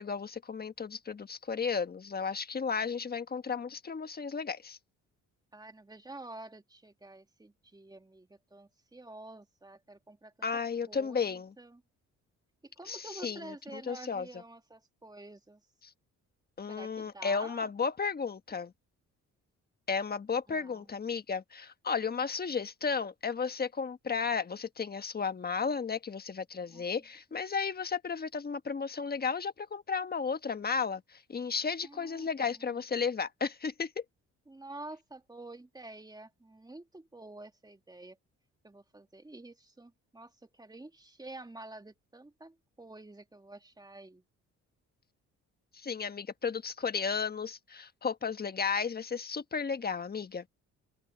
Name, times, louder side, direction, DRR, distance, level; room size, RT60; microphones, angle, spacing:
voice 1, 0.0-4.8 10.4-11.5 12.9-14.3 16.6-18.7 19.9-34.0 45.7-50.4, left 5 dB, 30° left, 1.4 m, -34 dB
voice 2, 5.5-10.5 10.9-11.8 12.6-15.6 16.7-17.7 20.5-20.9 26.7-26.8 31.8-32.8 34.5-38.2 38.6-44.2, right 2 dB, 15° right, 2.2 m, -49 dB
open air
cardioid pair, 90°, 30 cm